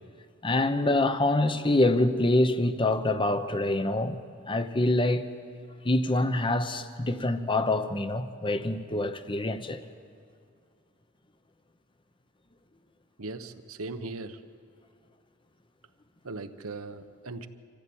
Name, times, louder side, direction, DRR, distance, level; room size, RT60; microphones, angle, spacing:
voice 1, 0.4-4.2 4.4-5.3 5.8-9.8, left 2 dB, 25° left, 0.9 m, -25 dB
voice 2, 13.2-14.4 16.2-17.5, right 3 dB, 75° right, 1.1 m, -38 dB
26.0 x 15.5 x 8.7 m
head